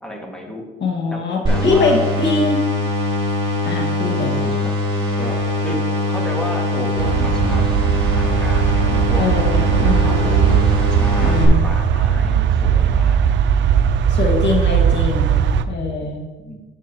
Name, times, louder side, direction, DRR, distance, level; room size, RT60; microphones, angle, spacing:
voice 1, 0.0-0.7 1.1-2.0 4.5-4.7 5.1-9.3 9.8-13.2 16.4-16.6, equal, 5° left, -1 dB, 2.0 m, -32 dB
voice 2, 0.8-2.6 3.6-4.4 9.2-10.2 11.2-11.6 14.1-16.2, left 3 dB, 65° left, 0 dB, 1.9 m, -22 dB
sound 1, 1.4-11.4, left 1 dB, 25° right, 3.0 m, -22 dB
sound 2, 7.0-15.6, right 8 dB, 70° right, 0.5 m, -18 dB
11.0 x 7.3 x 3.0 m, 1.2 s
cardioid pair, 90°, 20 cm